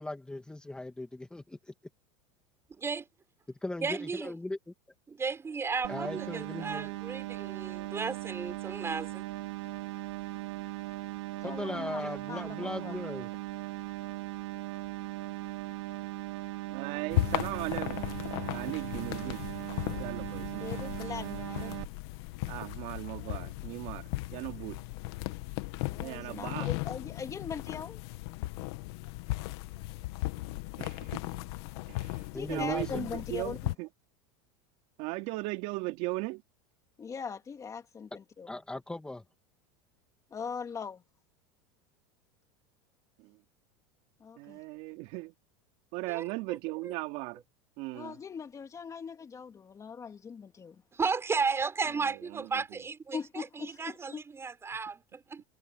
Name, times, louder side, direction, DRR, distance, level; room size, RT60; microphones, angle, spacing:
voice 1, 0.0-1.7 3.5-4.6 5.9-6.9 11.4-13.3 32.3-33.0 38.5-39.2, left 2 dB, 5° left, 1.9 m, -38 dB
voice 2, 3.8-4.4 5.2-9.3 46.1-46.2 46.5-46.6 46.8-46.9 50.9-55.4, right 5 dB, 20° right, 6.5 m, -34 dB
sound 1, 5.8-21.9, right 19 dB, 80° right, 3.1 m, -39 dB
voice 3, 11.4-13.0 20.6-21.7 25.9-28.0 32.0-33.7 37.0-38.5 40.3-41.0 44.2-44.6 47.9-50.8 53.1-54.2, left 6 dB, 20° left, 2.6 m, -41 dB
voice 4, 16.7-18.1 18.5-19.5 20.0-20.7 22.5-24.8 26.0-26.7 30.8-31.3 31.9-32.2 32.5-33.9 35.0-36.4 43.2-43.4 44.4-45.3 45.9-47.4 47.8-48.2 51.9-52.5, right 22 dB, 60° right, 3.0 m, -37 dB
sound 2, 17.1-33.7, left 19 dB, 70° left, 1.8 m, -37 dB
supercardioid pair, 130°, 14 cm